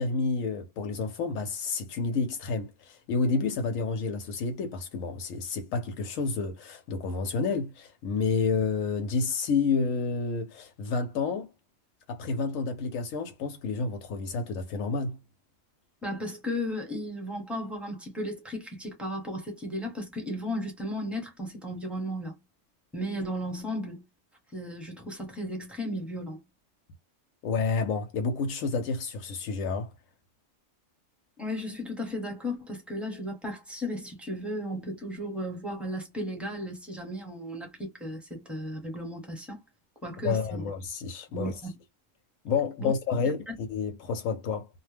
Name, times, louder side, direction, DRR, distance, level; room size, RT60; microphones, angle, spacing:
voice 1, 0.0-11.5 12.1-15.2 27.4-29.9 40.2-41.5 42.4-44.7, left 4 dB, 85° left, 1.0 m, -29 dB
voice 2, 16.0-22.4 22.9-24.0 24.5-26.4 31.4-39.6 40.0-40.6 41.3-41.8 42.8-42.9 43.5-43.6, equal, ahead, 0.9 m, -35 dB
2.3 x 2.1 x 3.3 m
omnidirectional pair, 1.3 m